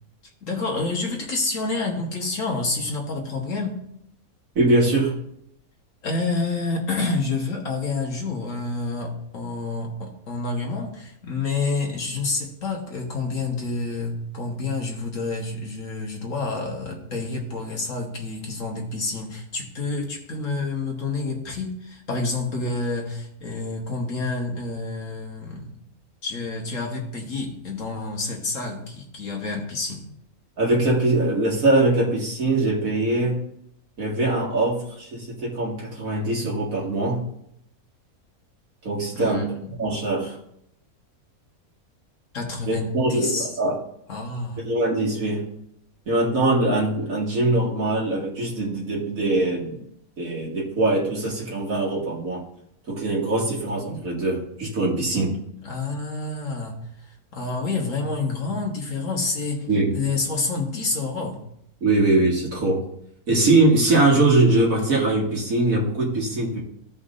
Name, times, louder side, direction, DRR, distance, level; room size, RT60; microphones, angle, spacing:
voice 1, 0.4-3.9 6.0-25.7 26.2-30.1 39.1-39.5 42.3-43.5 44.1-44.6 55.6-56.8 57.3-59.7 59.9-61.4, left 3 dB, 60° left, 1 dB, 1.8 m, -28 dB
voice 2, 4.6-5.1 30.6-33.4 34.0-37.2 38.8-39.4 39.8-40.4 42.7-43.8 44.6-45.4 46.1-49.8 50.2-52.4 52.9-55.4 59.7-59.9 61.8-62.8 63.3-66.6, right 2 dB, 65° right, -4 dB, 2.4 m, -22 dB
15.5 x 5.2 x 2.6 m, 0.74 s
omnidirectional pair, 1.5 m